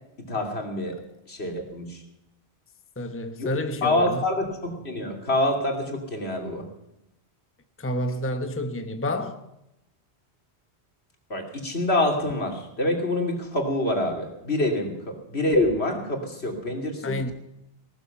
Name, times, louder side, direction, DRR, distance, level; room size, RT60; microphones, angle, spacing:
voice 1, 0.2-1.0 1.3-2.0 3.4-3.5 3.8-6.7 11.3-17.3, left 1 dB, 70° left, 3.3 m, -26 dB
voice 2, 3.0-4.2 7.8-9.4 17.0-17.3, left 1 dB, 10° left, 1.0 m, -29 dB
18.5 x 13.0 x 5.9 m
omnidirectional pair, 1.1 m